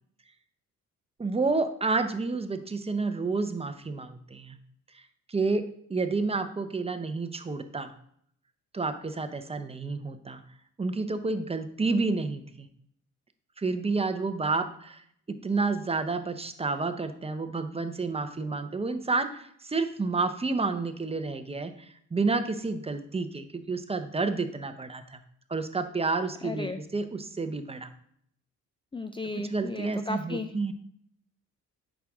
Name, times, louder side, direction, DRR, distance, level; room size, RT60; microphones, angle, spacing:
voice 1, 1.2-4.6 4.9-5.0 5.3-7.9 8.7-10.4 10.8-12.7 13.6-25.2 25.5-27.9 29.3-30.7, right 3 dB, 20° right, 9 dB, 0.8 m, -30 dB
voice 2, 26.4-26.8 28.9-30.7, left 3 dB, 15° left, 8 dB, 0.5 m, -35 dB
8.2 x 6.2 x 3.6 m, 0.65 s
cardioid pair, 90°, 30 cm